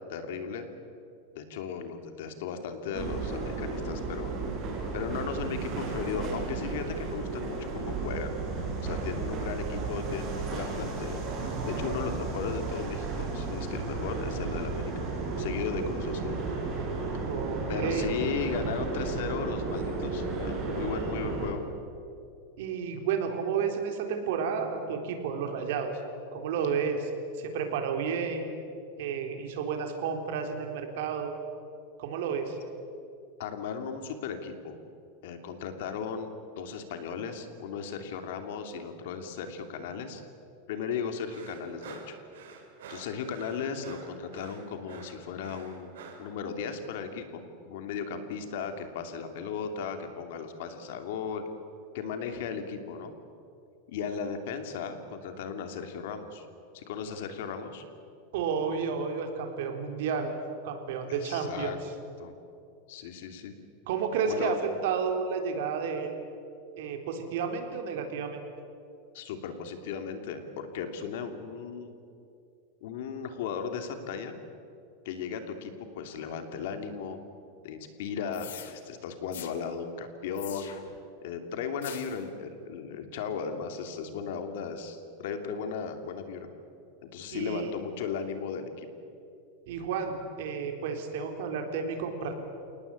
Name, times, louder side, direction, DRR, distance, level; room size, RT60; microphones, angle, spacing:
voice 1, 0.1-0.7 1.3-4.3 4.9-8.4 8.8-11.2 11.6-15.1 15.4-16.4 17.7-21.6 33.4-34.8 35.2-40.2 40.7-42.2 42.9-45.9 46.2-51.4 51.9-53.1 53.9-56.5 56.7-57.8 61.1-61.8 62.2-62.3 62.9-63.5 64.3-64.6 69.1-71.9 72.8-74.3 75.0-77.2 77.6-80.7 81.2-86.5 87.0-88.9, left 6 dB, 60° left, 7 dB, 2.9 m, -36 dB
sound 1, 2.9-21.5, right 3 dB, 25° right, 5.4 m, -33 dB
voice 2, 17.3-18.1 22.6-25.9 26.3-27.1 27.4-28.5 29.0-31.3 32.0-32.6 58.3-60.4 60.6-61.7 63.9-64.6 64.8-66.2 66.8-68.4 87.3-87.7 89.7-92.3, right 6 dB, 60° right, 4 dB, 3.8 m, -31 dB
sound 2, 41.3-46.3, right 5 dB, 85° right, 5.7 m, -48 dB
sound 3, 78.3-78.7 79.3-79.5 80.3-81.0 81.8-82.2, left 10 dB, 85° left, 2.6 m, -43 dB
29.5 x 19.0 x 8.7 m, 2.5 s
supercardioid pair, 170°, 0 cm